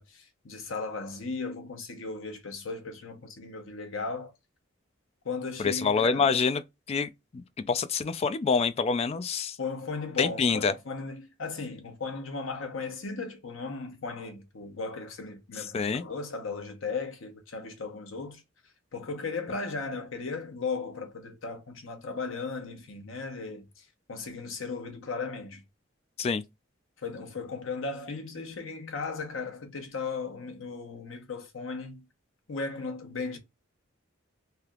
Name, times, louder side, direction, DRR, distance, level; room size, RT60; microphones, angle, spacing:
voice 1, 0.0-4.3 5.2-6.3 9.6-18.4 18.9-23.8 24.1-25.6 27.0-32.0 32.5-33.4, left 4 dB, 80° left, 0.9 m, -36 dB
voice 2, 5.6-6.6 6.9-9.6 10.2-10.7 15.6-16.0 26.2-26.4, left 5 dB, 30° left, 0.3 m, -27 dB
3.3 x 2.8 x 2.3 m
head